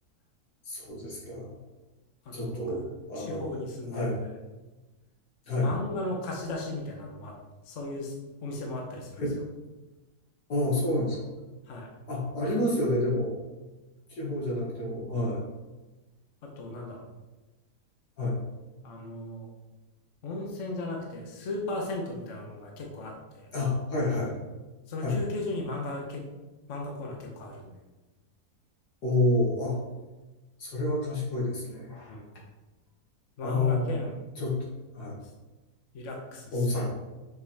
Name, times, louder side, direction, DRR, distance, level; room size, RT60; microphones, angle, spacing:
voice 1, 0.7-1.6 2.3-2.8 3.1-3.4 3.9-4.2 5.5-5.7 9.2-9.3 10.5-11.3 12.1-13.4 14.1-15.5 18.2-18.4 23.5-24.3 25.0-25.2 29.0-29.8 30.6-32.2 33.4-34.0 34.4-34.6 34.9-35.2 36.5-36.9, left 2 dB, 75° left, -4 dB, 2.4 m, -28 dB
voice 2, 2.2-2.9 3.2-4.3 5.6-7.3 7.6-8.1 8.4-9.2 11.7-11.9 12.4-12.8 16.4-17.1 18.8-19.5 20.2-23.5 24.1-24.2 24.9-26.2 26.7-27.7 32.1-32.3 33.4-34.1 35.9-36.9, left 2 dB, 55° left, 0 dB, 1.2 m, -36 dB
6.6 x 5.1 x 3.4 m, 1.1 s
omnidirectional pair, 1.7 m